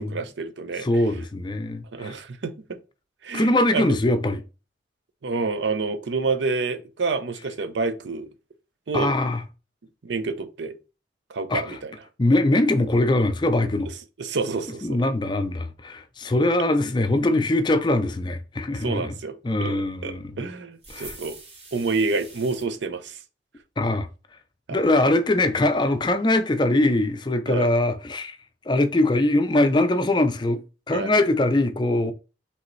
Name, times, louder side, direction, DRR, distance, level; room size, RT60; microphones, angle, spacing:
voice 1, 0.0-0.9 1.9-2.8 3.2-4.0 5.2-8.3 8.9-9.1 10.0-10.8 11.3-11.9 14.2-15.0 18.7-21.4 21.7-23.2 24.7-24.8 27.5-27.7 30.9-31.1, right 4 dB, 85° right, 0.6 m, -28 dB
voice 2, 0.8-2.2 3.3-4.4 8.9-9.4 11.5-11.8 12.2-13.9 14.8-19.1 19.4-20.5 20.9-21.2 23.8-24.1 24.7-28.4 28.7-32.1, left 2 dB, 25° left, 0.4 m, -22 dB
sound 1, 20.8-22.7, right 3 dB, 65° right, 2.5 m, -44 dB
5.0 x 3.4 x 3.1 m
head